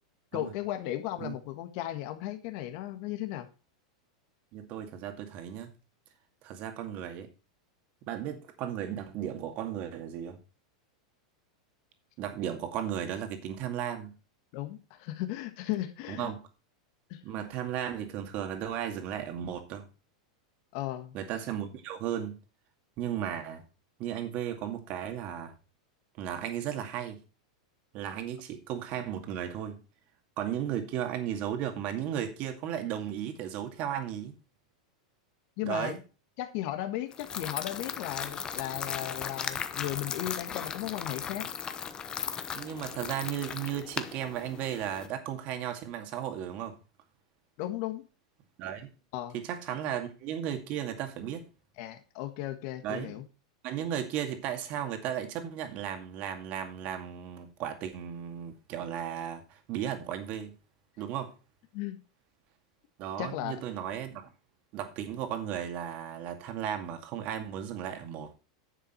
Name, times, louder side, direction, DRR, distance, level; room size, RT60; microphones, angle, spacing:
voice 1, 0.3-3.5 14.5-16.3 17.1-17.2 20.7-21.1 35.6-35.9 36.4-41.5 47.6-48.0 49.1-49.3 51.8-53.2 61.7-62.0 63.2-63.6, left 14 dB, 55° left, 1.5 m, -36 dB
voice 2, 4.5-5.7 6.4-7.3 8.1-10.4 12.2-14.1 16.1-16.4 17.2-19.9 21.1-22.4 23.0-23.6 24.0-25.5 26.2-27.2 27.9-29.8 30.4-34.3 35.6-36.0 42.5-46.8 48.6-48.9 49.3-51.5 52.8-53.2 53.6-60.5 61.0-61.3 63.0-64.3 64.7-68.3, right 10 dB, 45° right, 2.2 m, -35 dB
Stirring Mac and Cheese, 37.1-45.1, left 7 dB, 25° left, 1.0 m, -37 dB
10.0 x 7.3 x 4.5 m
hypercardioid pair, 115°, 3 cm